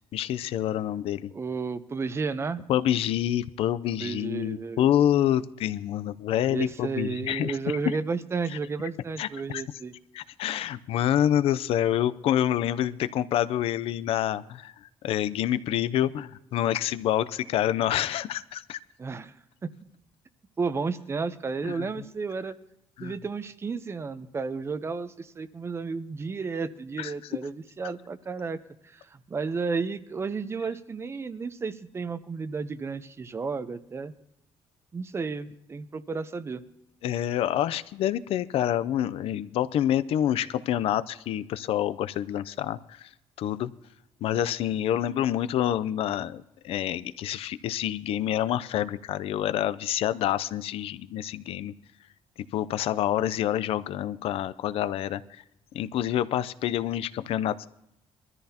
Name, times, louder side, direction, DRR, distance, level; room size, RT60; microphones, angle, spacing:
voice 1, 0.1-1.3 2.7-7.5 9.2-9.6 10.1-14.7 15.0-18.8 21.6-21.9 23.0-23.1 27.0-27.1 37.0-42.8 43.4-43.7 44.2-51.7 52.5-55.2 55.7-57.7, left 11 dB, 75° left, 15 dB, 0.6 m, -27 dB
voice 2, 1.3-2.6 4.0-4.9 6.5-9.9 19.0-19.3 19.6-19.7 20.6-22.5 23.0-28.6 28.8-34.1 34.9-36.6, right 4 dB, 25° right, 13 dB, 0.7 m, -32 dB
23.0 x 14.0 x 2.9 m, 0.82 s
cardioid pair, 130°, 10 cm